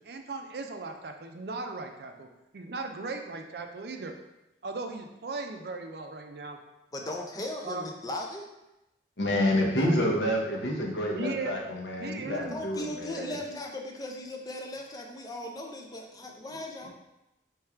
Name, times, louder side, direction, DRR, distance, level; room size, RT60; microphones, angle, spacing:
voice 1, 0.0-4.2 4.6-6.6 7.6-7.9 11.1-11.6 12.0-12.6 13.2-13.4, right 3 dB, 60° right, 5 dB, 0.4 m, -37 dB
voice 2, 6.9-8.5 12.5-16.9, left 1 dB, 20° left, 1 dB, 0.5 m, -37 dB
voice 3, 9.2-13.3 16.8-16.9, left 1 dB, 75° left, -1 dB, 0.9 m, -28 dB
3.6 x 3.2 x 4.3 m, 0.95 s
head